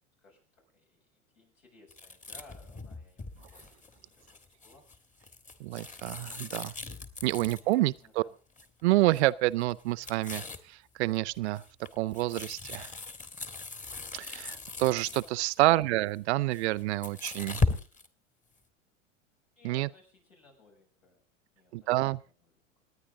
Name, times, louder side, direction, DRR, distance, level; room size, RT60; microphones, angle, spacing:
voice 1, 0.2-4.9 7.2-8.4 15.6-15.8 19.5-21.2 21.6-22.8, left 3 dB, 80° left, 7.5 m, -59 dB
sound 1, 1.9-8.0 8.6-8.8 9.1-9.3 9.6-10.7 11.1-15.6 16.4-18.1, left 3 dB, 20° left, 1.5 m, -37 dB
voice 2, 5.6-6.7 7.2-8.2 8.8-10.4 10.7-11.6 12.0-12.9 14.1-17.6 19.6-19.9 21.7-22.2, right 18 dB, 60° right, 0.7 m, -28 dB
27.0 x 9.9 x 3.8 m
hypercardioid pair, 90°, 39 cm